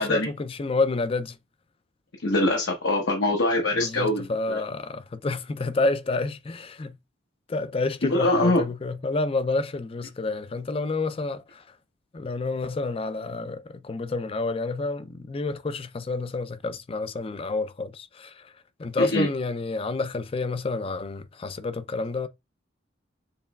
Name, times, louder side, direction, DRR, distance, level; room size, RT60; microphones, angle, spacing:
voice 1, 0.0-1.4 3.7-7.0 7.5-11.7 12.1-18.5 18.8-22.3, left 3 dB, 30° left, 0.4 m, -29 dB
voice 2, 2.2-4.6 8.0-8.6 19.1-19.3, left 1 dB, 75° left, 1.1 m, -23 dB
6.8 x 3.0 x 2.3 m
head